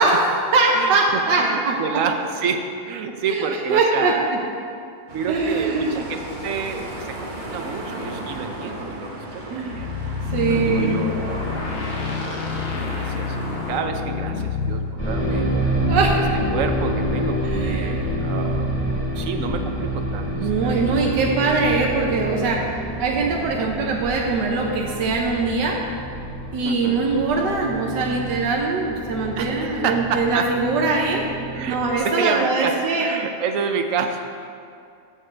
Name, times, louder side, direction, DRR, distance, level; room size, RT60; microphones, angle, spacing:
voice 1, 0.0-1.8 3.3-4.4 5.3-6.0 9.5-9.9 10.3-11.0 15.9-16.5 17.4-17.9 20.3-22.6 23.0-25.8 26.5-31.2 31.7-33.1, right 3 dB, 85° right, -1 dB, 1.5 m, -22 dB
voice 2, 0.7-4.3 5.1-9.9 10.5-15.5 16.5-18.8 19.2-21.0 23.6-23.7 26.6-27.1 29.4-30.5 31.5-34.5, right 5 dB, 60° right, 6 dB, 0.9 m, -29 dB
sound 1, 5.1-13.8, right 1 dB, 30° right, 1.1 m, -35 dB
sound 2, 9.7-14.9, left 4 dB, 45° left, 0.8 m, -27 dB
sound 3, 15.0-31.9, right 1 dB, 5° left, 2.2 m, -27 dB
13.0 x 7.7 x 3.3 m, 2.4 s
omnidirectional pair, 1.8 m